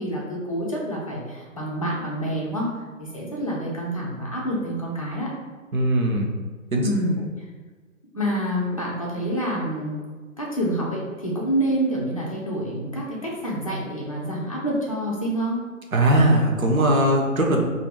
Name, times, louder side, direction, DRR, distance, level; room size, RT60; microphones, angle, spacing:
voice 1, 0.0-5.3 6.8-7.2 8.1-10.0 10.4-15.6, right 1 dB, 25° left, -4 dB, 0.5 m, -27 dB
voice 2, 5.7-6.3 6.7-6.9 15.9-17.6, right 1 dB, 75° right, 0 dB, 0.9 m, -19 dB
4.4 x 2.6 x 2.5 m, 1.4 s
figure-of-eight pair, 150°, 42 cm